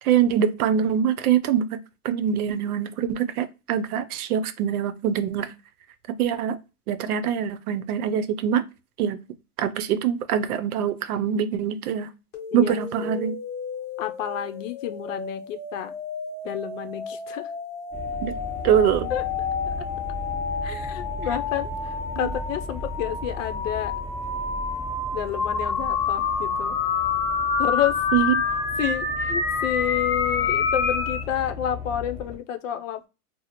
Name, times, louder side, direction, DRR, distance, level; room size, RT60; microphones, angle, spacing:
voice 1, 0.0-5.5 6.1-6.6 6.9-8.7 9.0-9.2 9.6-12.1 12.5-13.4 18.2-18.4 18.6-19.1 22.2-22.3 28.1-28.4, right 9 dB, 75° right, 0.6 m, -24 dB
sound 1, 12.3-31.2, left 5 dB, 25° left, 0.8 m, -28 dB
voice 2, 12.5-13.1 14.0-15.9 16.4-17.5 19.1-19.2 19.7-19.8 20.6-23.9 25.1-26.8 27.6-28.0 28.8-33.1, left 10 dB, 60° left, 0.6 m, -30 dB
sound 2, 17.9-32.4, left 2 dB, 10° right, 0.8 m, -37 dB
4.0 x 2.0 x 2.9 m
supercardioid pair, 170°, 44 cm